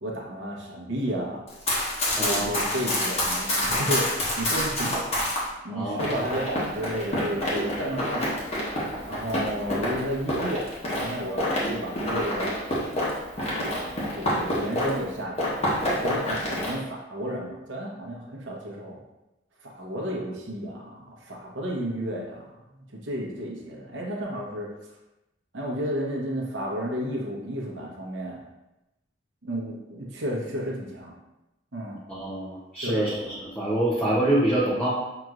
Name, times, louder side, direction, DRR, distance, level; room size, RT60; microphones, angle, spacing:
voice 1, 0.0-1.4 2.2-5.0 5.6-8.4 9.0-10.7 11.0-12.5 13.4-19.0 19.6-24.9 25.5-28.4 29.4-31.2 31.7-32.0 32.8-33.1, equal, 75° right, -3 dB, 0.9 m, -32 dB
Run, 1.5-5.4 6.0-15.1 15.4-16.7, left 1 dB, 35° left, 1.1 m, -28 dB
voice 2, 2.1-2.7 5.7-6.3 32.1-34.9, right 1 dB, 10° left, -10 dB, 0.7 m, -26 dB
5.7 x 3.0 x 2.5 m, 0.96 s
head